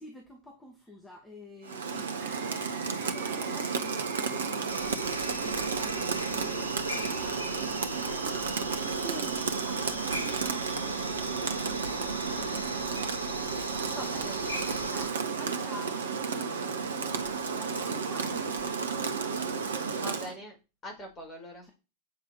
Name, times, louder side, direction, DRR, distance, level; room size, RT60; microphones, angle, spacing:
voice 1, 0.0-13.4 14.5-16.6 17.5-19.2 21.6-21.7, equal, 10° left, 2.4 m, -49 dB
Rain, 1.6-20.4, right 5 dB, 65° right, 1.4 m, -32 dB
sound 1, 2.2-14.8, right 5 dB, 45° right, 2.7 m, -48 dB
sound 2, 4.7-15.1, equal, 85° left, 3.1 m, -39 dB
voice 2, 13.9-14.5 20.0-20.6 20.8-21.7, equal, 25° left, 6.0 m, -42 dB
9.6 x 6.9 x 4.8 m
figure-of-eight pair, 90°, 0 cm